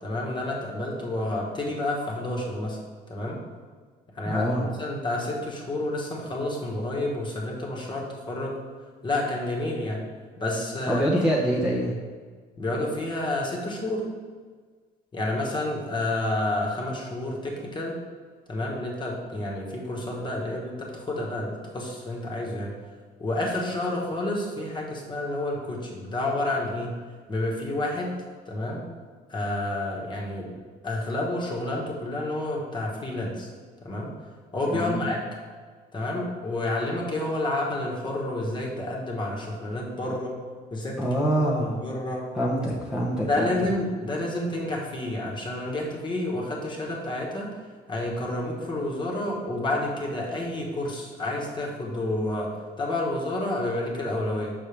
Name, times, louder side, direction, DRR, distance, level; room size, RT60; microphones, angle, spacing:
voice 1, 0.0-2.8 3.1-3.4 4.1-8.5 9.0-10.0 10.4-11.2 12.6-14.0 15.1-18.0 18.5-22.7 23.2-26.9 27.3-28.2 28.5-28.8 29.3-30.5 30.8-33.5 33.8-34.1 34.5-35.2 35.9-40.3 40.7-41.2 41.6-42.2 43.3-47.5 47.9-52.5 52.8-54.5, left 1 dB, 25° left, -2 dB, 1.4 m, -29 dB
voice 2, 4.2-4.7 10.9-11.9 34.7-35.1 41.0-41.8 42.3-43.5, equal, 5° right, -6 dB, 0.9 m, -25 dB
5.9 x 5.5 x 3.4 m, 1.5 s
cardioid pair, 110°, 17 cm